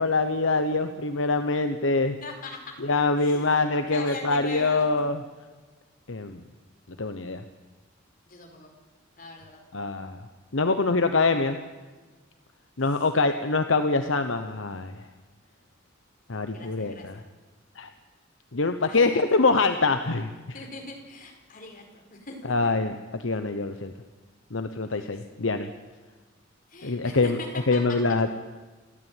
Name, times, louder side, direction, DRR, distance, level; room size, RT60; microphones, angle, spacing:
voice 1, 0.0-2.2 2.8-5.2 6.1-6.4 7.0-7.4 9.7-10.2 10.5-11.6 12.8-14.9 16.3-17.2 17.8-17.9 18.5-20.3 22.5-23.9 24.5-25.7 26.8-27.4 27.7-28.3, left 3 dB, 75° left, 8 dB, 1.1 m, -24 dB
voice 2, 2.2-4.9 8.3-8.7 9.2-9.6 16.5-17.3 18.9-19.4 20.5-22.7 24.8-25.1 26.7-28.0, left 2 dB, 45° left, 2 dB, 4.8 m, -41 dB
28.5 x 13.0 x 9.2 m, 1.3 s
head